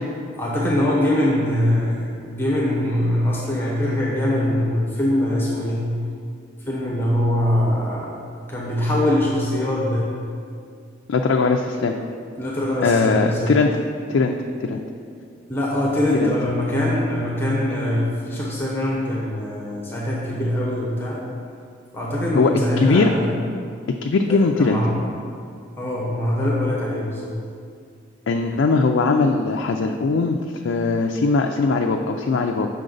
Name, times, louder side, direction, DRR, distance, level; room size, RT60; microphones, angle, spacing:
voice 1, 0.4-5.9 6.7-8.1 8.5-10.2 12.4-13.5 15.5-21.2 21.9-23.2 24.3-25.0 25.8-27.3, left 1 dB, 10° left, -5 dB, 0.9 m, -22 dB
voice 2, 11.1-12.0 12.8-13.7 14.1-14.3 14.6-14.8 16.2-16.3 22.3-22.5 22.8-23.1 23.9-24.8 28.3-30.4 30.6-32.7, left 4 dB, 75° left, 2 dB, 0.4 m, -20 dB
7.6 x 5.8 x 3.9 m, 2.3 s
head